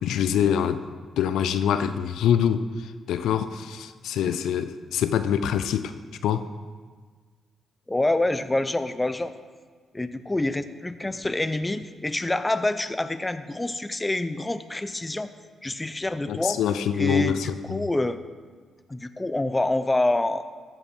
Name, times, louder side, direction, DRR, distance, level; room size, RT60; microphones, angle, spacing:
voice 1, 0.0-0.8 1.2-5.9 6.2-6.5 16.3-17.9, left 8 dB, 85° left, 11 dB, 0.4 m, -25 dB
voice 2, 7.9-9.3 9.9-15.3 15.6-16.6 16.9-18.2 18.9-20.5, left 2 dB, 15° left, 11 dB, 0.5 m, -26 dB
14.5 x 5.6 x 4.4 m, 1.6 s
cardioid pair, 80°, 0 cm